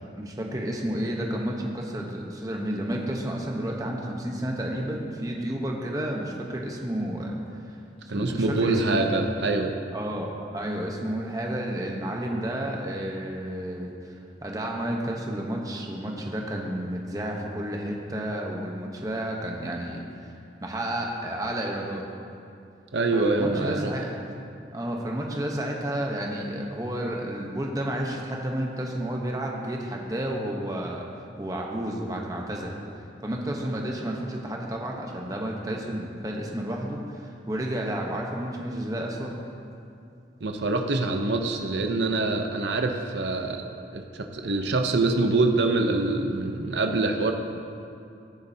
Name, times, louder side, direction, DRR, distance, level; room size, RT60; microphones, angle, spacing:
voice 1, 0.2-7.3 7.7-7.8 8.1-9.1 9.9-14.1 14.4-20.3 20.6-22.0 23.1-24.2 24.7-31.1 31.4-32.8 33.2-39.4, right 1 dB, 20° right, -1 dB, 1.0 m, -31 dB
voice 2, 8.1-9.7 22.9-23.9 40.4-43.6 43.9-47.3, right 3 dB, 80° right, 4 dB, 0.7 m, -25 dB
14.5 x 10.5 x 2.8 m, 2.5 s
head